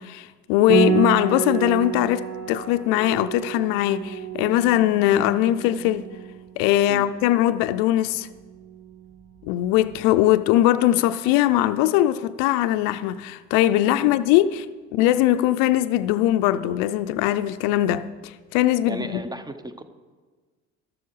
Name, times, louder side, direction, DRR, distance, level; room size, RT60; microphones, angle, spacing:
voice 1, 0.0-6.1 6.6-8.3 9.4-14.7 14.9-19.2, left 13 dB, 80° left, 0.5 m, -21 dB
Piano, 0.7-10.0, right 7 dB, 50° right, 1.5 m, -30 dB
voice 2, 18.8-19.8, right 1 dB, 10° right, 0.7 m, -35 dB
12.0 x 6.9 x 4.8 m
supercardioid pair, 90°, 33 cm